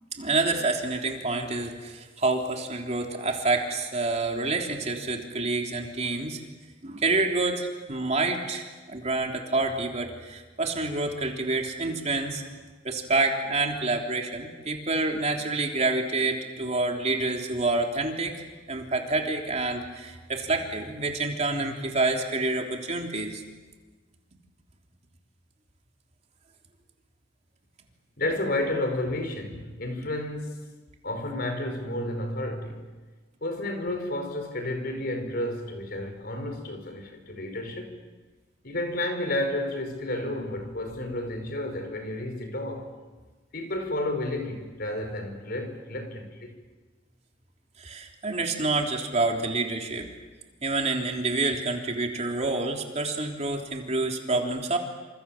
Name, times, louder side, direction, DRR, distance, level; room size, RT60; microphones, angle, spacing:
voice 1, 0.2-6.4 6.8-12.4 12.8-23.4 47.8-50.1 50.6-54.8, right 3 dB, 40° right, 3.5 m, -28 dB
voice 2, 28.2-30.7 31.0-32.9 33.4-38.0 38.6-42.9 43.5-46.5, left 1 dB, 55° left, 5.0 m, -31 dB
28.5 x 27.5 x 7.4 m
head